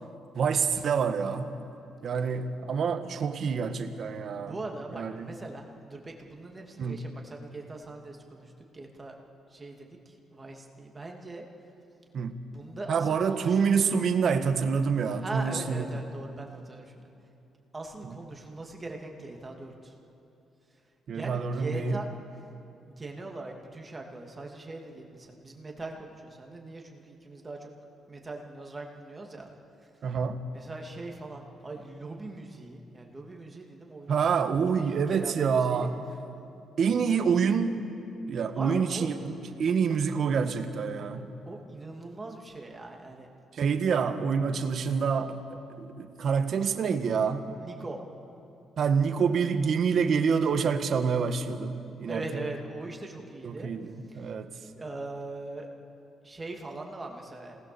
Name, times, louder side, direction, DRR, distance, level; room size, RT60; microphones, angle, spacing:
voice 1, 0.3-1.5 2.0-4.6 4.9-5.3 6.8-7.0 12.1-12.4 12.9-15.9 18.0-18.2 21.1-22.0 30.0-30.5 34.1-36.0 36.8-37.9 38.3-41.3 43.5-45.4 45.8-47.5 48.8-52.5 53.4-54.5, right 6 dB, 60° right, 7 dB, 1.5 m, -27 dB
voice 2, 4.3-9.1 9.5-11.4 12.5-13.8 15.2-17.1 17.7-19.9 21.1-22.1 22.8-27.7 28.1-29.5 30.5-35.9 38.5-39.1 41.5-43.3 47.6-48.0 52.1-53.7 54.1-54.3 54.7-55.7 56.2-57.6, right 2 dB, 25° right, 1 dB, 2.7 m, -41 dB
27.0 x 19.0 x 7.1 m, 2.8 s
cardioid pair, 90°, 0 cm